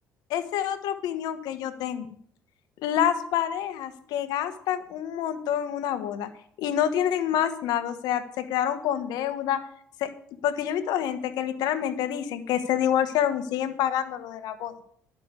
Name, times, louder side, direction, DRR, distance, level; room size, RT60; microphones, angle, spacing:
voice 1, 0.3-2.1 2.8-6.3 6.6-9.6 10.0-10.1 10.4-14.7, left 10 dB, 75° left, 10 dB, 1.3 m, -27 dB
11.5 x 6.0 x 8.3 m, 0.62 s
supercardioid pair, 75°, 7 cm